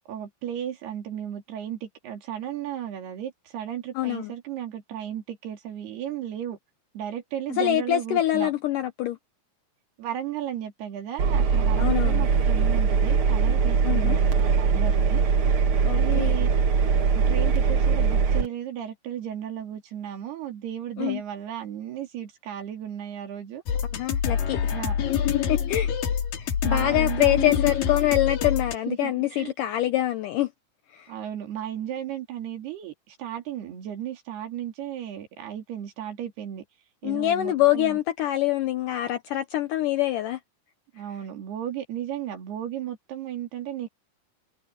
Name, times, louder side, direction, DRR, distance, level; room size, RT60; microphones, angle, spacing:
voice 1, 0.1-6.6 6.9-8.5 10.0-15.2 15.9-16.5 16.9-23.6 24.7-25.0 26.6-27.6 28.9-29.5 31.1-36.7 37.0-38.0 40.9-43.9, right 10 dB, 75° right, 4.7 m, -34 dB
voice 2, 4.0-4.3 7.5-9.2 11.8-12.3 13.8-14.2 15.8-16.4 21.0-21.2 23.9-24.6 25.5-25.9 26.4-30.5 30.9-31.1 37.0-40.4, left 14 dB, 80° left, 1.9 m, -25 dB
Engine, 11.2-18.5, right 5 dB, 50° right, 1.7 m, -21 dB
sound 1, 23.7-28.8, left 8 dB, 60° left, 3.8 m, -26 dB
omnidirectional pair, 4.6 m